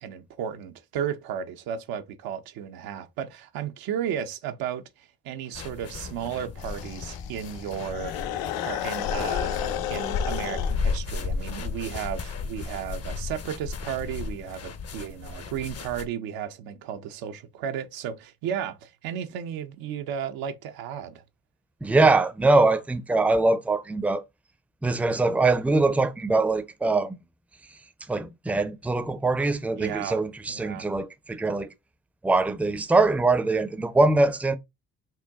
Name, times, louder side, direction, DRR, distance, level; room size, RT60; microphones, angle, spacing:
voice 1, 0.0-8.1 8.6-21.2 29.7-30.2 30.5-30.9, right 9 dB, 80° right, 0.7 m, -34 dB
sound 1, 5.5-16.1, left 4 dB, 45° left, 0.7 m, -34 dB
sound 2, 6.6-10.8, left 11 dB, 85° left, 0.5 m, -32 dB
voice 2, 21.8-24.2 24.8-27.2 28.1-31.7 32.2-34.6, right 3 dB, 5° right, 0.5 m, -22 dB
4.3 x 2.2 x 3.5 m
supercardioid pair, 65°, 35 cm